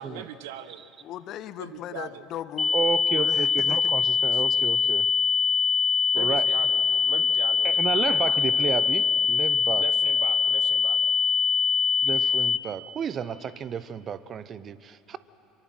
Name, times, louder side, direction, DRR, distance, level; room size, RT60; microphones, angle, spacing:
voice 1, 0.0-0.8 1.6-2.2 4.3-4.4 6.1-8.2 9.8-11.1, right 9 dB, 70° right, 13 dB, 1.0 m, -40 dB
voice 2, 1.0-2.7 3.1-3.9, left 12 dB, 55° left, 14 dB, 0.9 m, -38 dB
sound 1, 2.6-12.6, left 7 dB, 20° left, 0.8 m, -23 dB
voice 3, 2.7-5.1 6.1-6.5 7.6-9.8 12.0-15.2, right 7 dB, 40° right, 16 dB, 0.9 m, -32 dB
25.0 x 23.5 x 6.2 m, 2.8 s
hypercardioid pair, 70°, 0 cm